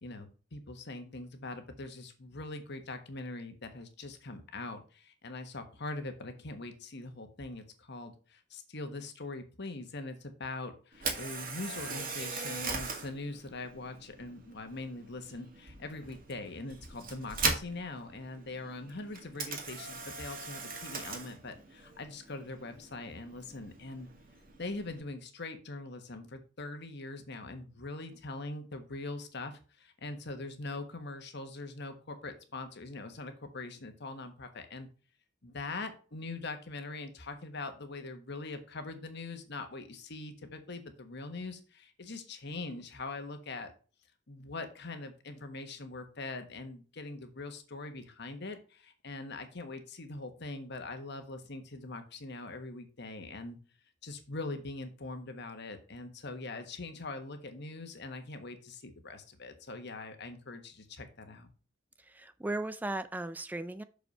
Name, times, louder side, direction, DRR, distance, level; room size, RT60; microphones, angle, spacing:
voice 1, 0.0-24.1 24.6-34.9 35.4-43.7 44.3-53.6 54.0-61.5, left 2 dB, 60° left, 7 dB, 1.3 m, -42 dB
Camera, 10.9-25.0, right 4 dB, 50° right, 2.1 m, -40 dB
voice 2, 62.0-63.8, right 2 dB, 10° right, 12 dB, 0.3 m, -36 dB
6.5 x 5.2 x 5.4 m, 0.37 s
head